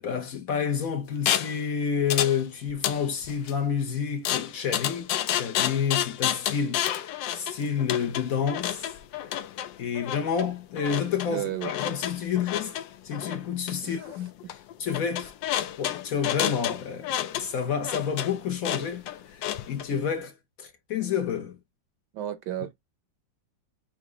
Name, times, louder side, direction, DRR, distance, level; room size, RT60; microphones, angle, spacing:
voice 1, 0.0-8.9 9.2-9.3 9.8-12.7 13.0-14.3 14.8-15.3 15.8-21.6, left 7 dB, 60° left, 1.0 m, -29 dB
sound 1, 1.3-1.6 2.1-2.4 2.7-3.5 4.2-19.9, left 11 dB, 75° left, 1.2 m, -30 dB
voice 2, 11.3-11.7 13.8-14.1 22.1-22.7, right 12 dB, 70° right, 1.1 m, -32 dB
5.9 x 2.5 x 3.1 m
omnidirectional pair, 2.1 m